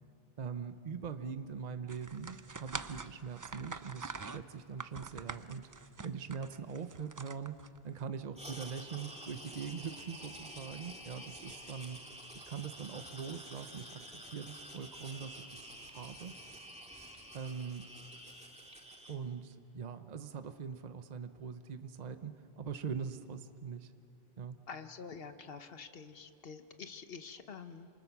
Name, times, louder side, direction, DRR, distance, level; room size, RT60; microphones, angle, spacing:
voice 1, 0.4-5.7 6.0-7.5 7.8-12.0 12.3-14.0 14.3-16.3 17.3-17.9 19.1-23.9 24.4-24.6, right 6 dB, 45° right, 10 dB, 0.9 m, -42 dB
sound 1, 1.9-8.0, right 4 dB, 30° right, 0.4 m, -45 dB
sound 2, 8.3-19.2, equal, 5° right, 2.0 m, -49 dB
voice 2, 24.7-27.9, left 5 dB, 65° left, 8 dB, 1.3 m, -47 dB
28.0 x 26.5 x 6.0 m, 2.8 s
omnidirectional pair, 1.0 m